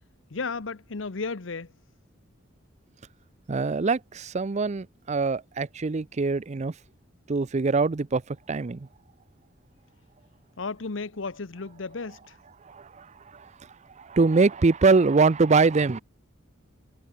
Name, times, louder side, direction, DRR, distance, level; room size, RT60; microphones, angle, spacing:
voice 1, 0.3-1.7 10.6-12.4, left 4 dB, 75° left, 0.9 m, -34 dB
voice 2, 3.5-6.7 7.3-8.9 12.7-13.1 13.3-13.5 14.0-16.0, right 4 dB, 35° right, 0.5 m, -23 dB
head